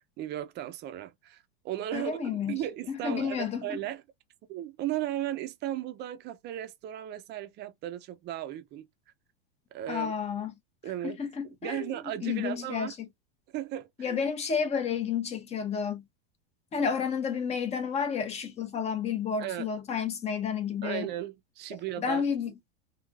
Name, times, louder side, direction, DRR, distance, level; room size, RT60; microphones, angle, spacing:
voice 1, 0.2-2.2 2.5-3.4 3.6-4.0 4.5-8.9 9.7-10.1 10.8-11.2 11.6-12.9 13.5-14.2 19.4-19.7 20.8-22.2, right 13 dB, 30° right, 0.6 m, -36 dB
voice 2, 1.9-2.6 2.9-3.8 9.9-10.5 11.0-11.9 12.2-13.1 14.0-16.0 16.7-21.1 21.7-22.5, left 6 dB, 20° left, 0.8 m, -31 dB
3.1 x 2.8 x 2.5 m
supercardioid pair, 140°, 33 cm